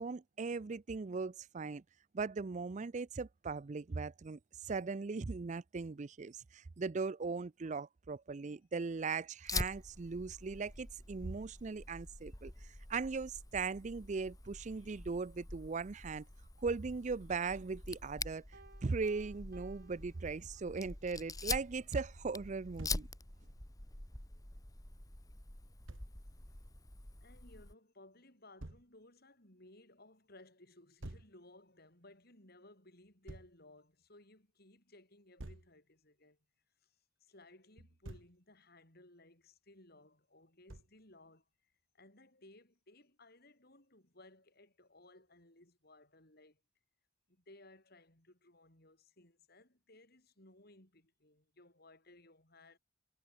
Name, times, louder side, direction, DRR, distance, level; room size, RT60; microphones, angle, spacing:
voice 1, 0.0-1.8 2.1-12.5 12.9-16.2 16.6-18.4 18.8-23.1, right 4 dB, 40° right, 0.5 m, -39 dB
Fire, 9.5-27.7, left 3 dB, 20° left, 1.9 m, -45 dB
Piano, 18.5-20.9, right 3 dB, 55° right, 5.6 m, -61 dB
Thump thud, 22.8-23.1 25.9-26.1 28.6-28.9 31.0-31.3 33.3-33.5 35.4-35.7 37.8-38.4 40.7-41.0, right 1 dB, 90° right, 1.7 m, -48 dB
voice 2, 27.2-36.4 36.8-36.9 37.2-46.6 47.3-52.8, left 2 dB, 55° left, 7.6 m, -61 dB
head